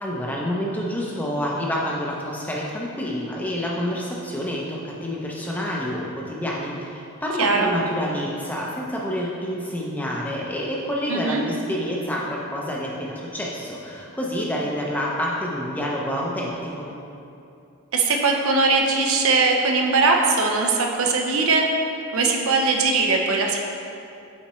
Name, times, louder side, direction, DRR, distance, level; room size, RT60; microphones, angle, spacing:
voice 1, 0.0-16.9, equal, 5° left, -4 dB, 0.6 m, -28 dB
voice 2, 7.4-7.7 11.1-11.4 17.9-21.7 22.1-23.6, right 3 dB, 70° right, 1 dB, 0.6 m, -20 dB
8.4 x 4.3 x 3.1 m, 2.6 s
head